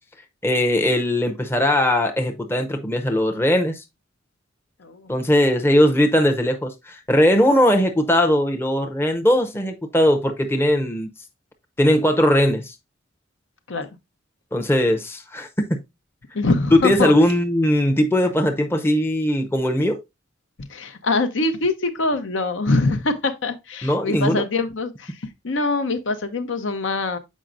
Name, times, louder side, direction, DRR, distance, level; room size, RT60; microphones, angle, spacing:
voice 1, 0.4-3.8 5.1-11.1 11.8-12.7 14.5-15.8 16.8-20.0 23.8-24.4, equal, 10° left, 0.7 m, -19 dB
voice 2, 4.8-5.1 13.7-13.9 16.3-17.1 20.6-27.2, left 3 dB, 65° left, 0.8 m, -24 dB
7.3 x 5.1 x 2.5 m
head